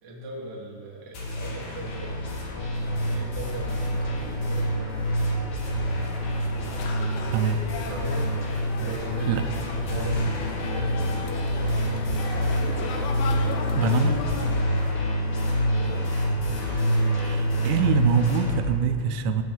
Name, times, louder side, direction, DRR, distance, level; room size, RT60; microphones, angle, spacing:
voice 1, 0.0-5.6 7.8-8.4 8.8-10.4 10.7-11.1 15.7-16.1, right 1 dB, 65° right, -4 dB, 1.0 m, -39 dB
sound 1, 1.1-18.6, equal, 55° left, 2.7 m, -26 dB
sound 2, 5.6-14.6, left 5 dB, 75° left, 2.5 m, -37 dB
voice 2, 7.3-7.6 9.3-9.4 13.8-14.2 17.2-19.4, right 7 dB, 85° right, 9 dB, 2.8 m, -24 dB
16.0 x 6.2 x 3.9 m, 2.3 s
omnidirectional pair, 5.3 m